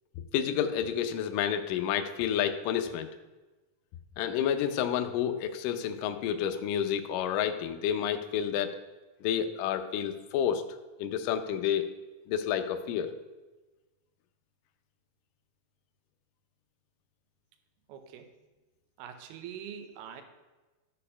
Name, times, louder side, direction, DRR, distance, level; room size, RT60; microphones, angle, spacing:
voice 1, 0.3-3.1 4.2-8.8 9.2-10.6 11.0-11.9 12.3-13.1, left 9 dB, 75° left, 7 dB, 2.0 m, -29 dB
voice 2, 17.9-18.3 19.0-20.2, right 8 dB, 85° right, 7 dB, 2.7 m, -43 dB
13.0 x 4.3 x 5.5 m, 1.2 s
omnidirectional pair, 4.4 m